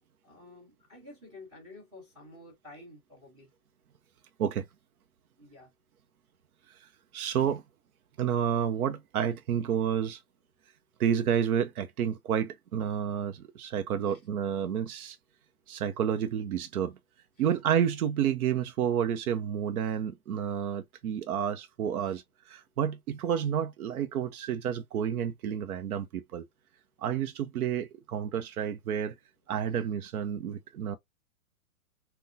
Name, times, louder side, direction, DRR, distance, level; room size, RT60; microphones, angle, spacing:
voice 1, 0.2-3.5 5.4-5.7 14.1-14.2 17.4-17.5 22.0-22.2, left 2 dB, 10° right, 1.3 m, -51 dB
voice 2, 7.1-7.6 8.2-10.2 11.0-15.2 15.7-17.0 17.4-22.2 22.5-26.4 27.0-29.1 29.5-31.0, right 8 dB, 80° right, 0.6 m, -30 dB
3.8 x 2.2 x 2.6 m
hypercardioid pair, 160°, 43 cm